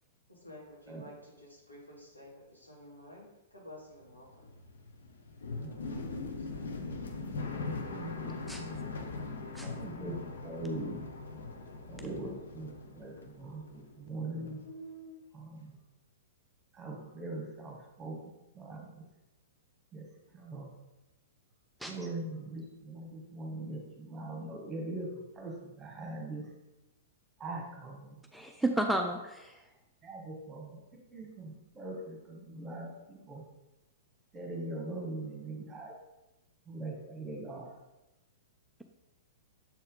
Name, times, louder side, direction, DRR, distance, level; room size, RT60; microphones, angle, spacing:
voice 1, 0.3-3.3 3.5-4.5 5.6-6.6, left 1 dB, 90° left, -4 dB, 2.2 m, -52 dB
sound 1, 4.0-14.1 14.3-15.2, left 3 dB, 65° left, 0.8 m, -41 dB
voice 2, 5.6-5.9 7.3-8.3 8.6-9.0 9.6-11.0 11.9-14.7 15.3-15.8 16.7-19.0 19.9-20.1 20.3-20.7 21.8-26.5 27.4-28.2 30.0-30.8 31.1-33.4 34.3-35.9 36.6-37.8, right 2 dB, 15° right, 0 dB, 1.5 m, -42 dB
voice 3, 8.2-8.6 9.5-9.7 21.8-21.9 28.3-29.6, right 1 dB, ahead, 2 dB, 0.4 m, -32 dB
7.3 x 4.3 x 3.7 m, 0.98 s
figure-of-eight pair, 105°, 0 cm